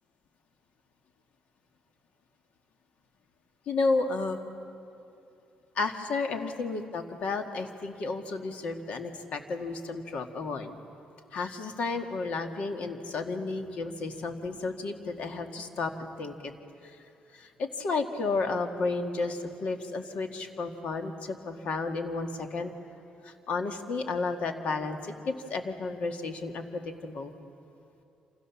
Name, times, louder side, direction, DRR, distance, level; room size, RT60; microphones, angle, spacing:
voice 1, 3.7-4.4 5.8-10.7 11.3-16.5 16.8-17.0 17.3-22.7 23.2-27.3, left 3 dB, 55° left, 5 dB, 2.0 m, -32 dB
28.0 x 27.5 x 7.2 m, 2.8 s
cardioid pair, 175°, 3 cm